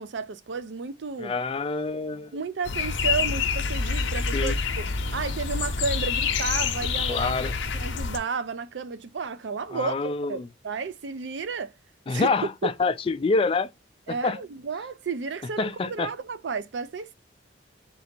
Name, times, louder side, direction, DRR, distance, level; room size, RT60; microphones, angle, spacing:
voice 1, 0.0-1.3 2.3-4.9 5.1-7.4 7.7-11.7 12.1-12.3 12.6-12.7 14.1-17.1, right 5 dB, 70° right, 0.5 m, -32 dB
voice 2, 1.2-2.3 4.3-4.6 7.1-7.6 9.7-10.5 12.1-13.7 14.2-14.4 15.6-16.1, left 4 dB, 30° left, 0.3 m, -26 dB
sound 1, 2.6-8.2, left 5 dB, 80° left, 0.6 m, -27 dB
3.8 x 2.4 x 4.4 m
head